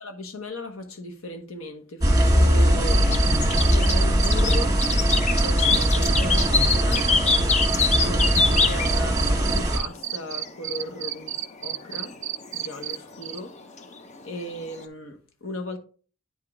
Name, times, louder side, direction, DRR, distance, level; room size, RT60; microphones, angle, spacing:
voice 1, 0.0-3.1 3.6-4.8 5.4-7.1 8.0-11.3 11.6-12.1 12.5-13.5 14.2-15.8, left 1 dB, 80° left, 1.1 m, -36 dB
sound 1, 2.0-9.8, equal, 20° right, 1.6 m, -21 dB
sound 2, 2.1-14.8, left 5 dB, 35° left, 0.6 m, -26 dB
sound 3, 2.9-13.0 13.2-13.4, right 13 dB, 60° right, 0.4 m, -30 dB
9.2 x 5.0 x 3.5 m
head